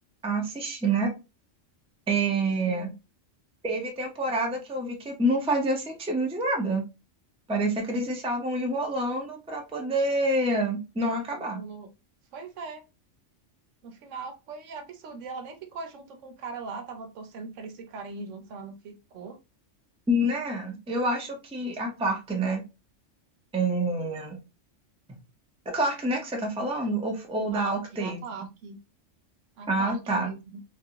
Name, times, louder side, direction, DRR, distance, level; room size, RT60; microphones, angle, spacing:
voice 1, 0.2-1.1 2.1-2.9 3.6-6.8 7.5-11.6 20.1-22.6 23.5-24.4 25.7-28.2 29.7-30.3, right 1 dB, 5° right, 1 dB, 0.5 m, -27 dB
voice 2, 11.4-11.9 12.3-12.8 13.8-19.4 27.5-28.8 29.6-30.6, right 4 dB, 80° right, 6 dB, 1.0 m, -40 dB
3.2 x 2.5 x 2.7 m, 0.27 s
omnidirectional pair, 1.3 m